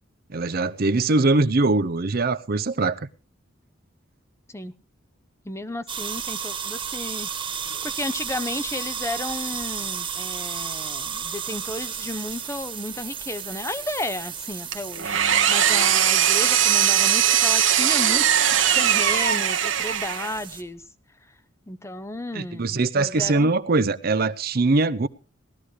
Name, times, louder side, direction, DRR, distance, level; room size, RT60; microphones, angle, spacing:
voice 1, 0.3-3.1 22.3-25.1, right 3 dB, 50° right, 0.7 m, -22 dB
voice 2, 5.4-15.2 15.5-20.8 21.7-23.5, left 2 dB, 15° left, 0.7 m, -33 dB
sound 1, 5.9-20.6, right 7 dB, 25° right, 1.5 m, -34 dB
Engine, 14.7-20.4, right 9 dB, 85° right, 1.3 m, -20 dB
19.0 x 13.0 x 3.2 m
head